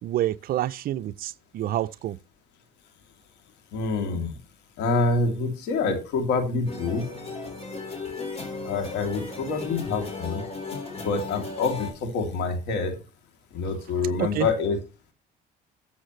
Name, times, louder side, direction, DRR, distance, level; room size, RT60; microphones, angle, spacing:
voice 1, 0.0-2.2 14.2-14.5, right 13 dB, 60° right, 0.5 m, -28 dB
voice 2, 3.7-4.4 4.8-7.1 8.6-10.4 11.0-13.0 13.5-14.8, left 4 dB, 85° left, 2.9 m, -26 dB
sound 1, 6.7-11.9, left 4 dB, 35° left, 4.1 m, -35 dB
13.0 x 7.2 x 3.2 m
cardioid pair, 110°, 17 cm